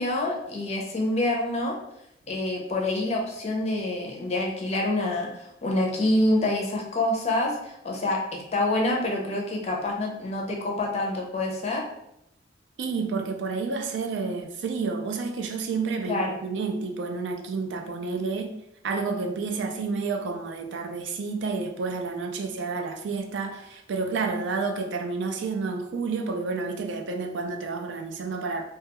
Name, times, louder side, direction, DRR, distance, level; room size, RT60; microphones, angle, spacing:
voice 1, 0.0-1.7 2.3-11.8 16.1-16.4, left 1 dB, 35° left, 0 dB, 0.5 m, -27 dB
voice 2, 12.8-18.5 18.8-28.6, right 4 dB, 70° right, 4 dB, 0.3 m, -30 dB
2.3 x 2.2 x 2.8 m, 0.81 s
head